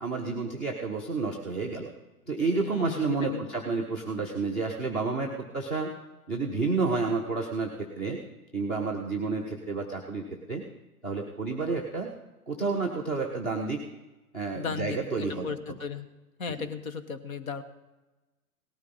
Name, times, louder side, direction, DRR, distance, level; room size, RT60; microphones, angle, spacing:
voice 1, 0.0-1.9 2.3-5.9 6.3-8.2 8.5-10.6 11.0-12.1 12.5-13.8 14.3-15.8 16.5-16.7, right 4 dB, ahead, -1 dB, 0.4 m, -30 dB
voice 2, 2.6-3.4 14.5-16.1 16.4-17.6, left 5 dB, 60° left, 11 dB, 1.4 m, -36 dB
18.0 x 12.5 x 4.2 m, 1.1 s
figure-of-eight pair, 115°, 46 cm